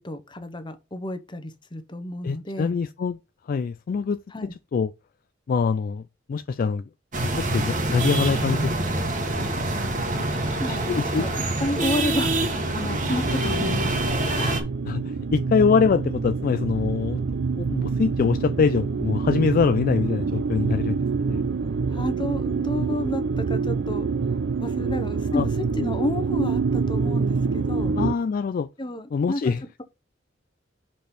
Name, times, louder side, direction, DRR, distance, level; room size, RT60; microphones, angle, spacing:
voice 1, 0.0-2.8 4.3-4.5 10.1-13.9 14.4-14.7 21.9-24.1 24.6-28.0 28.8-29.5, left 1 dB, 25° left, 0.9 m, -31 dB
voice 2, 2.2-3.2 3.5-4.2 4.7-4.9 5.5-6.0 6.3-6.8 7.5-8.7 10.7-11.3 14.9-17.2 17.6-21.0 21.3-21.5 25.3-25.5 28.0-28.7 29.1-29.8, left 5 dB, 45° left, 0.3 m, -24 dB
sound 1, 7.1-14.6, right 2 dB, 40° right, 1.4 m, -25 dB
sound 2, 12.3-28.1, right 5 dB, 65° right, 0.4 m, -26 dB
5.1 x 4.3 x 5.8 m
head